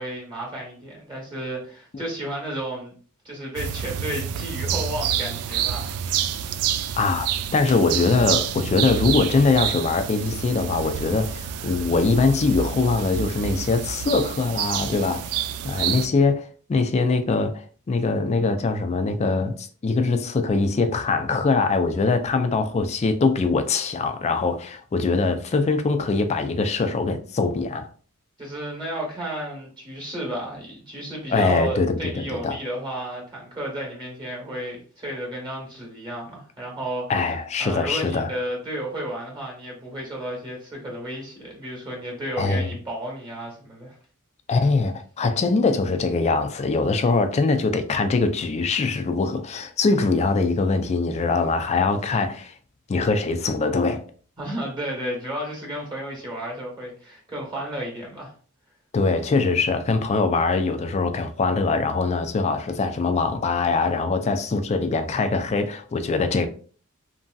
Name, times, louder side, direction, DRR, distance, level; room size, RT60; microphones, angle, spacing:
voice 1, 0.0-2.9 3.2-6.3 28.4-37.1 37.6-44.0 54.4-58.3, right 1 dB, 20° right, 0.9 m, -32 dB
sound 1, 3.6-16.1, right 8 dB, 85° right, 0.3 m, -28 dB
voice 2, 7.0-15.4 15.6-27.9 31.3-32.6 37.1-38.3 42.4-42.7 44.5-52.5 52.9-54.0 58.9-66.5, left 3 dB, 30° left, 0.3 m, -22 dB
3.0 x 2.6 x 2.3 m
head